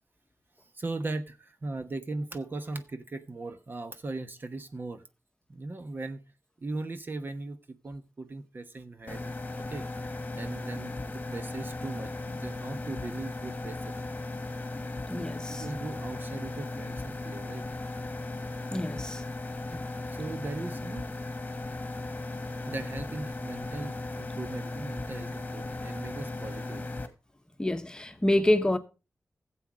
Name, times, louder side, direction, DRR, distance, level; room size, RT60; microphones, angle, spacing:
voice 1, 0.7-5.0 5.5-6.3 6.6-13.9 15.5-17.6 20.1-21.0 22.7-26.8, right 2 dB, 40° right, 1.0 m, -38 dB
sound 1, 9.1-27.1, left 2 dB, 30° left, 1.5 m, -37 dB
voice 2, 15.1-15.6 18.7-19.2 19.7-19.8 27.6-28.8, left 1 dB, 15° left, 1.1 m, -27 dB
15.5 x 7.7 x 4.8 m
wide cardioid pair, 115°, 5 cm